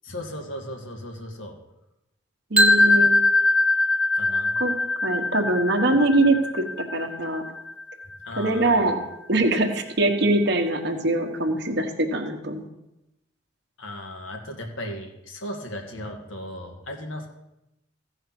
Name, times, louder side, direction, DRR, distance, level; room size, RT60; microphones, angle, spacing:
voice 1, 0.0-1.6 4.1-4.6 8.2-8.9 13.8-17.3, left 1 dB, 75° left, 2 dB, 1.8 m, -36 dB
voice 2, 2.5-3.1 4.6-4.7 5.0-6.6 6.9-7.4 8.4-9.0 9.3-12.7, right 2 dB, 55° right, 3 dB, 1.2 m, -23 dB
sound 1, 2.6-8.5, left 2 dB, 5° right, 0.9 m, -22 dB
15.0 x 5.0 x 6.0 m, 0.90 s
head